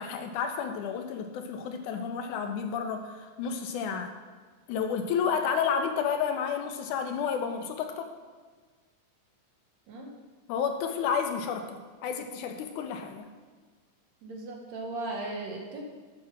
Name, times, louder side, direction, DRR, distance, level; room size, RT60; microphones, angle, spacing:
voice 1, 0.0-4.1 4.7-8.1 10.5-13.3, left 6 dB, 80° left, 6 dB, 2.0 m, -31 dB
voice 2, 14.2-15.8, right 2 dB, 65° right, 1 dB, 2.1 m, -37 dB
8.7 x 6.2 x 5.9 m, 1.4 s
omnidirectional pair, 3.7 m